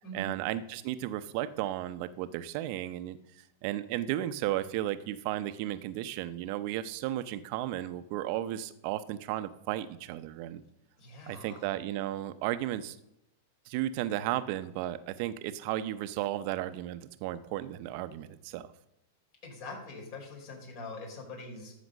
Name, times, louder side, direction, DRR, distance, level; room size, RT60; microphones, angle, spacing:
voice 1, 0.1-3.2 3.6-10.6 11.3-13.0 13.7-18.7, right 13 dB, 55° right, 12 dB, 0.7 m, -34 dB
voice 2, 11.0-11.7 19.4-21.7, left 2 dB, 50° left, 0 dB, 4.9 m, -43 dB
13.5 x 5.1 x 6.4 m, 0.82 s
hypercardioid pair, 120°, 0 cm